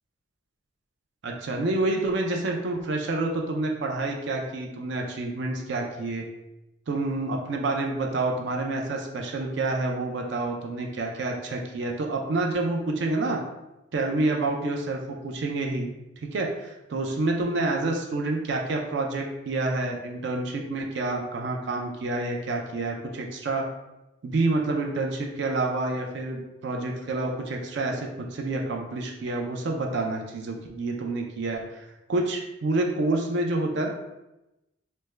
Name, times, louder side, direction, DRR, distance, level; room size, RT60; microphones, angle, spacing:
voice 1, 1.2-6.2 6.9-13.4 13.9-15.9 16.2-23.6 24.2-33.9, right 2 dB, 60° right, 1 dB, 0.4 m, -28 dB
3.3 x 2.1 x 3.2 m, 0.95 s
head